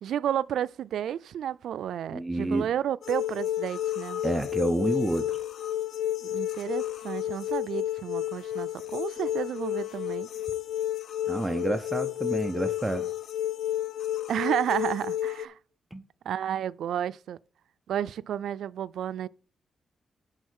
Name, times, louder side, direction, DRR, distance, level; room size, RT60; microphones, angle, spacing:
voice 1, 0.0-4.2 6.2-10.3 14.3-15.6 16.3-17.4 17.9-19.3, right 10 dB, 90° right, 0.4 m, -31 dB
voice 2, 2.1-2.7 4.2-5.4 11.3-13.1 15.9-16.0, right 1 dB, 10° right, 0.6 m, -29 dB
sound 1, 3.0-15.5, left 12 dB, 75° left, 0.5 m, -31 dB
10.5 x 3.8 x 6.5 m
wide cardioid pair, 150°, 0 cm